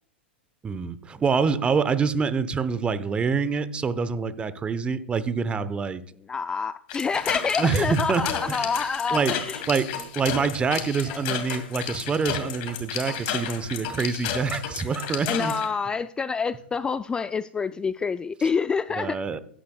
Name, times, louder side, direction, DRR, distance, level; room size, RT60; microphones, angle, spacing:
voice 1, 0.6-6.0 7.6-8.7 9.1-9.4 9.7-15.5 19.0-19.4, right 5 dB, 20° right, 0.8 m, -26 dB
voice 2, 6.3-9.6 11.1-11.2 15.3-19.2, left 5 dB, 15° left, 0.3 m, -27 dB
sound 1, 6.9-15.7, left 9 dB, 50° left, 2.2 m, -32 dB
15.0 x 10.0 x 2.3 m
hypercardioid pair, 100°, 6 cm